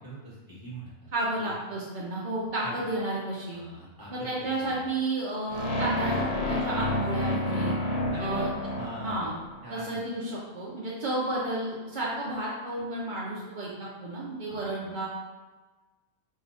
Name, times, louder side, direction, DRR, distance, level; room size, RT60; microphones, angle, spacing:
voice 1, 0.0-1.1 1.4-1.6 2.6-2.8 3.5-4.8 8.1-8.5 8.8-9.3 9.6-9.9 14.5-14.6, equal, 15° right, -9 dB, 1.3 m, -41 dB
voice 2, 1.1-3.6 4.1-7.7 8.2-8.5 9.0-9.3 9.7-13.7 14.0-15.1, right 2 dB, 65° right, -5 dB, 0.4 m, -31 dB
sound 1, 5.5-9.6, left 1 dB, 85° left, 1.2 m, -30 dB
5.0 x 2.3 x 2.6 m, 1.3 s
omnidirectional pair, 1.6 m